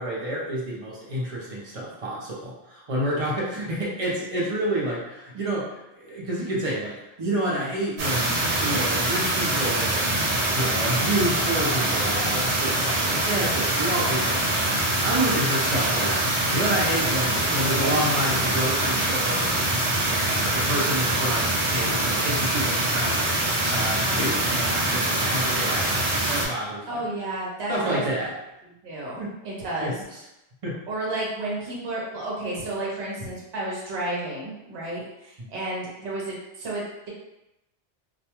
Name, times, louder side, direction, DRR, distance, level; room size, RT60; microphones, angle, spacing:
voice 1, 0.0-25.9 26.2-26.9 27.7-28.3 29.2-29.4 29.8-30.2 30.6-30.8, right 1 dB, 40° right, -5 dB, 0.6 m, -29 dB
sound 1, 8.0-26.5, right 1 dB, 90° right, 1.0 m, -24 dB
Toilet flush, 8.6-20.4, right 1 dB, 25° left, 0.7 m, -39 dB
sound 2, 23.6-25.4, left 2 dB, 50° left, 0.9 m, -37 dB
voice 2, 26.9-28.0 28.8-29.2 29.4-29.9 30.9-36.8, right 2 dB, 70° right, -5 dB, 1.0 m, -31 dB
2.4 x 2.2 x 2.9 m, 0.90 s
omnidirectional pair, 1.2 m